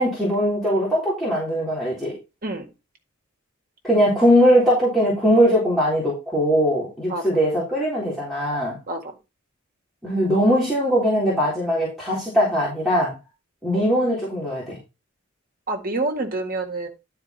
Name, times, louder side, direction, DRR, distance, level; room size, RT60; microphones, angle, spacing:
voice 1, 0.0-2.1 3.8-8.8 10.0-13.2 13.6-14.8, equal, ahead, -8 dB, 3.9 m, -20 dB
voice 2, 15.7-16.9, right 2 dB, 45° right, 4 dB, 1.8 m, -27 dB
11.5 x 4.6 x 4.1 m, 0.26 s
head